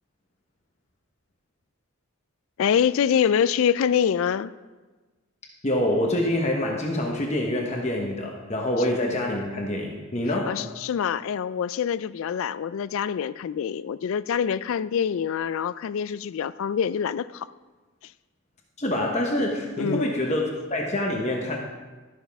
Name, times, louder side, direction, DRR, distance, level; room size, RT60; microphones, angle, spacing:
voice 1, 2.6-4.5 10.5-17.5 19.8-20.1, left 8 dB, 65° left, 16 dB, 0.3 m, -25 dB
voice 2, 5.6-10.6 18.8-20.4 20.7-21.6, left 1 dB, 30° left, 0 dB, 1.0 m, -26 dB
12.5 x 11.5 x 3.5 m, 1.3 s
head